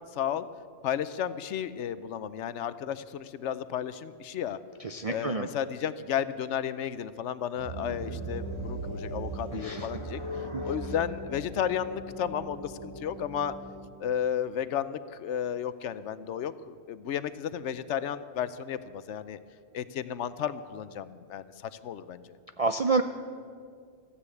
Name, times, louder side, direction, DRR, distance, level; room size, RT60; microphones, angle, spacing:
voice 1, 0.1-0.5 0.8-4.6 5.1-10.2 10.6-13.5 14.0-19.4 19.7-21.5 21.8-22.4, left 9 dB, 70° left, 14 dB, 0.9 m, -33 dB
voice 2, 4.8-5.5 9.5-9.9 10.5-10.6 22.6-23.0, right 4 dB, 50° right, 7 dB, 0.4 m, -28 dB
sound 1, 7.6-13.8, right 1 dB, 20° left, 2.5 m, -38 dB
14.5 x 9.9 x 8.4 m, 2.2 s
omnidirectional pair, 1.3 m